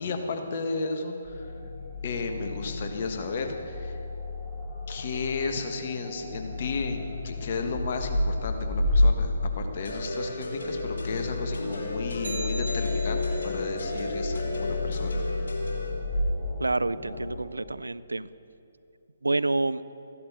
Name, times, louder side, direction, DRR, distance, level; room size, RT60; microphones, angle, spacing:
voice 1, 0.0-1.5 2.0-4.0 4.9-15.3, left 4 dB, 45° left, 5 dB, 1.4 m, -33 dB
sound 1, 1.2-17.4, left 2 dB, 10° right, 4.0 m, -31 dB
sound 2, 9.8-15.9, left 1 dB, 65° left, 2.9 m, -35 dB
sound 3, 12.2-13.6, right 2 dB, 60° right, 1.7 m, -39 dB
voice 2, 16.6-18.3 19.2-19.8, right 2 dB, 80° right, 17 dB, 0.4 m, -28 dB
14.5 x 11.5 x 6.6 m, 2.8 s
figure-of-eight pair, 135°, 0 cm